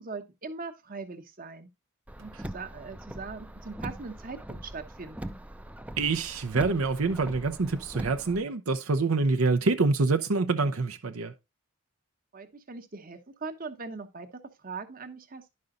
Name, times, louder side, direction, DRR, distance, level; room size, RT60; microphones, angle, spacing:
voice 1, 0.0-1.7 2.2-5.4 12.3-15.4, right 4 dB, 40° right, 1.1 m, -41 dB
Car, 2.1-8.4, right 1 dB, 5° right, 0.4 m, -41 dB
voice 2, 6.0-11.3, right 3 dB, 75° right, 0.7 m, -26 dB
11.0 x 5.5 x 3.8 m
head